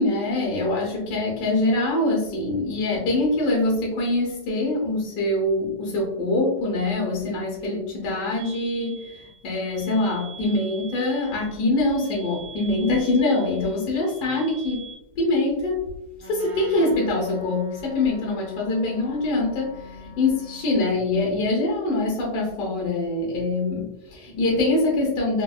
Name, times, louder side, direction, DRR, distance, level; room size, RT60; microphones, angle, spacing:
voice 1, 0.0-15.8 16.2-25.4, left 2 dB, 75° left, -3 dB, 1.4 m, -24 dB
sound 1, 8.4-14.9, right 5 dB, 45° right, 0.9 m, -44 dB
Wind instrument woodwind instrument, 16.1-21.0, left 3 dB, 80° right, 1.4 m, -43 dB
4.5 x 2.1 x 2.2 m, 0.85 s
omnidirectional pair, 1.8 m